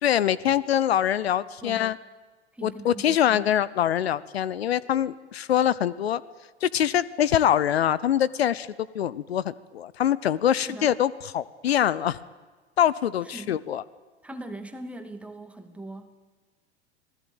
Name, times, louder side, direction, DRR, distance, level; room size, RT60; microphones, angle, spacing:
voice 1, 0.0-2.0 2.6-6.2 6.6-8.7 8.9-12.2 12.8-13.8, left 10 dB, 65° left, 19 dB, 0.9 m, -24 dB
voice 2, 2.5-3.4 10.6-10.9 13.3-13.6 14.2-16.2, right 1 dB, 5° right, 6 dB, 2.6 m, -40 dB
27.0 x 19.0 x 9.1 m, 1.4 s
figure-of-eight pair, 90°, 33 cm